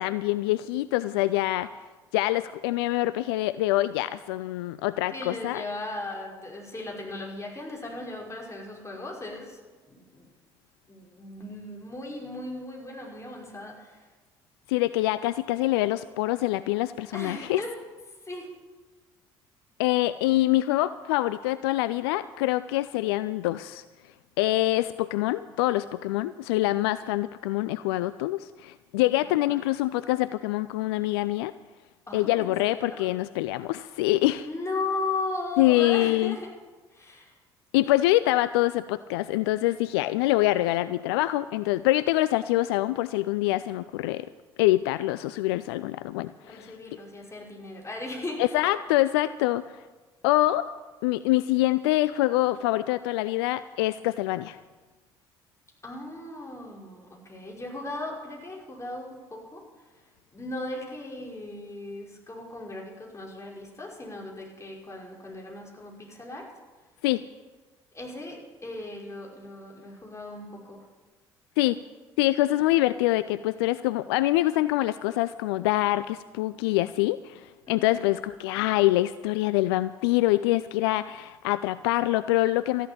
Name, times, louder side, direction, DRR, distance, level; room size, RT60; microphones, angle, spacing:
voice 1, 0.0-1.7 2.1-5.6 14.7-17.6 19.8-23.8 24.4-31.5 32.1-34.5 35.6-36.4 37.7-44.3 44.6-46.7 48.4-49.6 50.2-50.7 51.0-54.6 67.0-67.2 71.6-71.8 72.2-82.9, left 17 dB, 75° left, 15 dB, 0.4 m, -25 dB
voice 2, 5.1-9.6 9.8-10.3 10.9-14.1 17.1-17.7 18.2-18.5 29.4-29.5 32.1-33.1 34.4-36.5 36.9-37.4 46.2-48.6 55.8-59.6 60.3-66.5 67.9-70.8 77.7-78.0, left 2 dB, 20° left, -2 dB, 5.4 m, -37 dB
13.5 x 11.0 x 8.5 m, 1.3 s
figure-of-eight pair, 50°, 13 cm